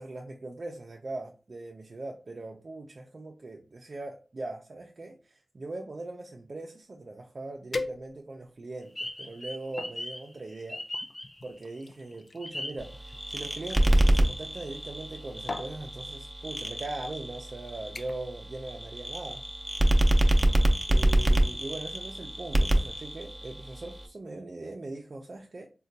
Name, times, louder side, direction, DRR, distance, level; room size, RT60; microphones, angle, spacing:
voice 1, 0.0-10.8 11.4-19.4 20.9-25.7, right 2 dB, 60° right, 0.4 m, -40 dB
sound 1, 7.1-7.2 7.7-8.5 9.1-10.0 10.9-13.8 14.9-15.1 15.5-15.8 16.7-16.8 17.2-17.5 17.9-18.4 18.7-19.0 19.4-19.5, left 3 dB, 65° left, 0.4 m, -40 dB
sound 2, 9.0-11.8 12.4-13.5 13.8-13.9 14.3-15.4, left 1 dB, 30° left, 0.8 m, -39 dB
sound 3, 12.8-24.1, right 1 dB, 15° right, 0.6 m, -27 dB
3.9 x 2.2 x 2.7 m
wide cardioid pair, 60°, 0 cm